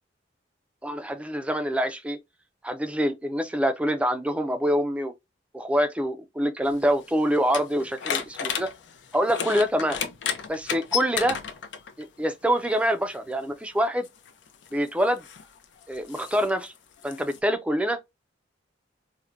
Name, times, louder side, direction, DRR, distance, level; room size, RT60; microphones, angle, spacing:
voice 1, 0.8-2.2 2.6-5.1 5.5-8.7 9.1-10.0 10.5-11.4 12.0-14.1 14.7-15.2 15.9-16.7 17.0-18.0, equal, 5° right, 0.4 m, -25 dB
sound 1, 6.6-12.0 13.1-13.3 14.0-17.4, left 7 dB, 75° left, 0.5 m, -33 dB
4.3 x 2.1 x 2.4 m
head